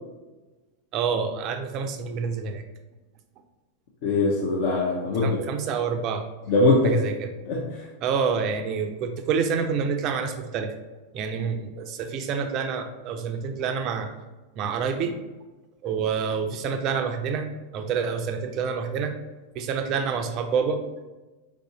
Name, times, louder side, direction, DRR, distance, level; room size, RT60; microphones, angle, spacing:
voice 1, 0.9-2.6 5.2-6.2 6.8-7.3 8.0-10.7 11.1-14.1 14.6-15.1 15.8-17.5 17.7-19.1 19.6-20.8, right 6 dB, 40° right, 6 dB, 0.4 m, -27 dB
voice 2, 4.0-5.4 6.5-7.0 7.4-7.9, left 2 dB, 50° left, -4 dB, 0.6 m, -22 dB
4.7 x 2.6 x 2.8 m, 1.1 s
figure-of-eight pair, 90°, 0 cm